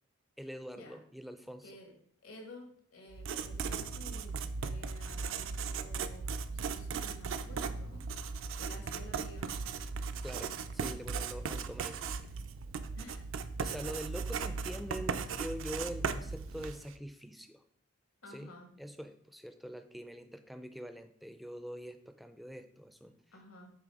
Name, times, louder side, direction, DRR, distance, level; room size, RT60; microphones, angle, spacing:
voice 1, 0.4-1.7 10.2-12.3 13.6-17.6 18.3-18.5 18.8-23.1, equal, ahead, 8 dB, 0.3 m, -44 dB
voice 2, 1.6-1.9 2.2-4.4 4.6-6.2 6.5-8.0 8.6-9.5 13.0-13.2 13.7-13.9 18.2-18.7 23.3-23.7, left 1 dB, 85° left, 3 dB, 1.7 m, -52 dB
Writing, 3.1-16.9, right 5 dB, 70° right, 0.4 m, -37 dB
7.7 x 3.2 x 4.7 m, 0.63 s
head